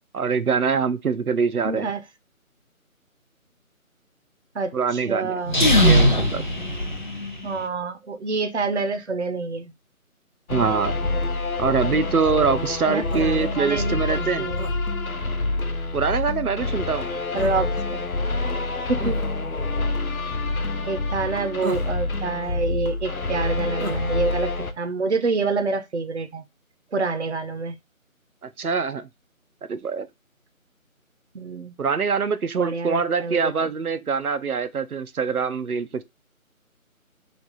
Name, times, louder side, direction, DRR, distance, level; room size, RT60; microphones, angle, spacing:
voice 1, 0.1-1.9 4.7-5.4 5.7-6.4 10.5-11.1 11.6-14.5 15.9-17.1 28.6-29.1 29.7-30.1 31.8-36.0, right 5 dB, 85° right, 0.7 m, -24 dB
voice 2, 1.6-2.0 4.5-5.6 7.4-9.7 12.9-14.7 17.3-18.1 18.9-19.2 20.9-26.4 26.9-27.7 31.3-31.7 32.6-33.7, right 3 dB, 50° right, 0.7 m, -27 dB
sound 1, 5.4-7.6, equal, 35° left, 0.6 m, -19 dB
sound 2, 10.5-24.7, left 2 dB, 75° left, 0.9 m, -27 dB
sound 3, 13.1-13.3 14.6-14.8 17.4-17.6 19.0-19.2 21.6-22.0 23.8-24.0, right 2 dB, 70° right, 1.2 m, -32 dB
3.3 x 2.8 x 3.9 m
figure-of-eight pair, 160°, 43 cm